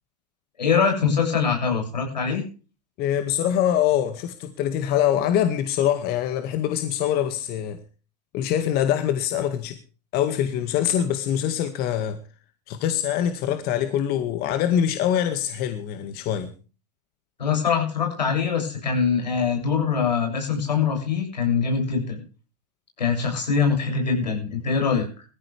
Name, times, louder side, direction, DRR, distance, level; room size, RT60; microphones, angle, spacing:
voice 1, 0.6-2.4 17.4-22.2 23.0-25.2, left 6 dB, 90° left, 3 dB, 7.4 m, -23 dB
voice 2, 3.0-7.8 8.3-9.8 10.1-12.2 12.7-16.5 24.8-24.9, left 10 dB, 50° left, 8 dB, 2.0 m, -24 dB
19.5 x 14.5 x 3.5 m, 0.36 s
hypercardioid pair, 95°, 21 cm